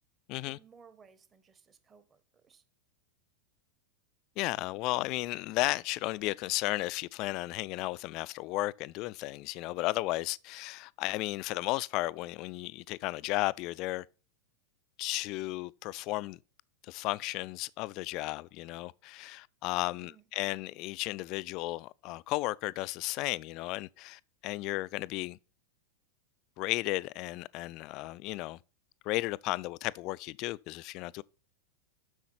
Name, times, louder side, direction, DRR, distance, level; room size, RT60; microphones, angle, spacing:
voice 1, 0.4-2.6 20.0-20.3, right 6 dB, 20° right, 1.0 m, -59 dB
voice 2, 4.4-14.1 15.0-16.4 16.8-25.4 26.6-28.6 29.0-31.2, left 20 dB, 40° left, 0.3 m, -34 dB
7.8 x 6.4 x 5.7 m
figure-of-eight pair, 90°, 0 cm